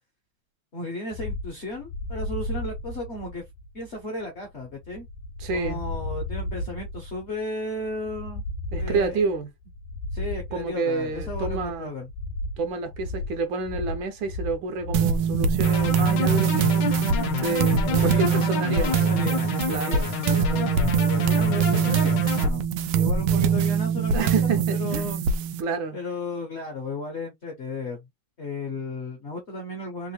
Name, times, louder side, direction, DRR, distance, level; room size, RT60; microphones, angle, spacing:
voice 1, 0.7-3.4 3.7-5.1 5.5-8.4 8.8-9.2 10.1-12.1 17.8-22.6 22.9-24.3 24.7-25.2 25.9-28.0 28.4-30.1, left 2 dB, 50° left, 0.9 m, -34 dB
sound 1, 1.1-16.0, left 1 dB, 80° left, 1.4 m, -34 dB
voice 2, 5.4-5.8 8.7-9.5 10.5-11.9 12.6-16.9 17.3-19.0 19.7-20.1 24.1-25.0 25.6-26.0, right 4 dB, 75° right, 1.4 m, -29 dB
sound 2, 14.9-25.6, right 7 dB, 90° right, 1.5 m, -23 dB
sound 3, 15.6-22.5, left 7 dB, 65° left, 1.3 m, -30 dB
3.7 x 2.5 x 2.8 m
omnidirectional pair, 2.3 m